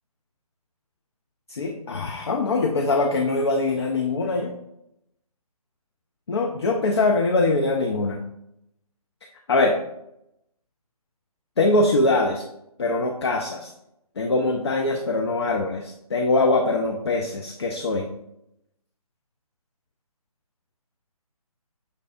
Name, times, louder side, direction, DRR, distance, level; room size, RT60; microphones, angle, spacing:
voice 1, 1.5-4.5 6.3-8.2 9.5-9.7 11.6-12.4 12.8-13.7 14.2-18.1, left 2 dB, 45° left, 3 dB, 0.4 m, -22 dB
5.4 x 3.2 x 2.4 m, 0.82 s
figure-of-eight pair, 145°, 19 cm